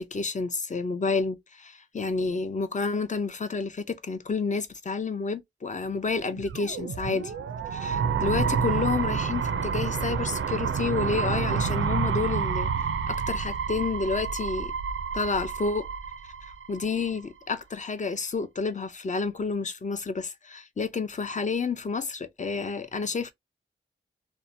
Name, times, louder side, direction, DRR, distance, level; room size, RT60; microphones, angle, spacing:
voice 1, 0.0-7.3 7.7-12.7 13.1-14.7 15.1-15.9 16.7-23.3, left 4 dB, 40° left, 0.5 m, -30 dB
sound 1, 6.2-17.1, right 6 dB, 85° right, 0.4 m, -29 dB
2.7 x 2.1 x 2.5 m
wide cardioid pair, 65°, 20 cm